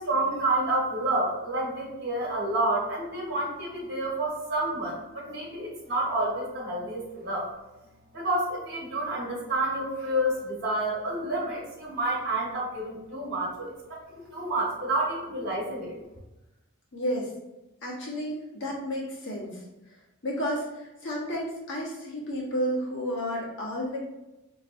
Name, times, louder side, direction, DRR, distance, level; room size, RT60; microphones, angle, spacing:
voice 1, 0.0-7.5 8.1-15.9, right 1 dB, 50° right, -5 dB, 1.4 m, -29 dB
voice 2, 16.9-17.3 17.8-24.0, equal, 60° left, -4 dB, 1.2 m, -32 dB
4.0 x 3.0 x 2.6 m, 0.99 s
head